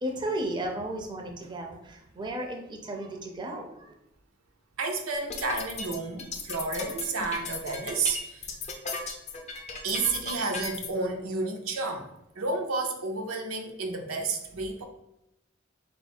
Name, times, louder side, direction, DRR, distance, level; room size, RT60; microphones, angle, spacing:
voice 1, 0.0-3.9, right 1 dB, 20° right, 2 dB, 0.5 m, -34 dB
voice 2, 4.8-8.5 9.8-12.1 12.4-14.8, right 3 dB, 90° right, 3 dB, 0.6 m, -31 dB
sound 1, 5.1-10.9, left 4 dB, 35° left, 0.5 m, -36 dB
3.8 x 2.4 x 4.2 m, 0.85 s
head